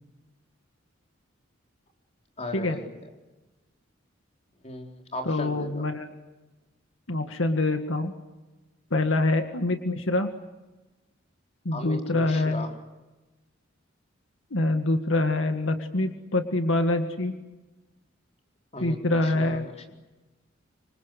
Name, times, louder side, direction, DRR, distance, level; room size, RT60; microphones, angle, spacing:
voice 1, 2.4-2.9 4.6-5.9 11.7-12.7 18.7-19.9, left 2 dB, 35° left, 3 dB, 4.2 m, -37 dB
voice 2, 5.3-6.1 7.1-8.1 8.9-10.3 11.7-12.6 14.5-17.3 18.8-19.7, left 2 dB, 80° left, 6 dB, 1.9 m, -25 dB
27.0 x 25.5 x 8.3 m, 1.1 s
head